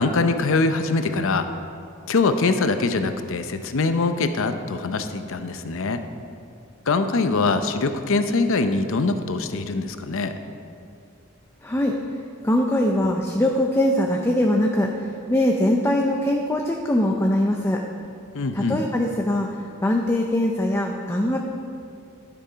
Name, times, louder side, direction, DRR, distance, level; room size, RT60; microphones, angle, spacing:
voice 1, 0.0-1.5 2.1-6.0 6.9-10.3 18.3-18.8, left 3 dB, 65° left, 8 dB, 0.6 m, -23 dB
voice 2, 11.6-11.9 12.4-14.9 15.3-17.8 18.5-19.5 19.8-21.4, left 1 dB, 10° left, 1 dB, 0.5 m, -22 dB
12.0 x 7.0 x 5.1 m, 2.4 s
head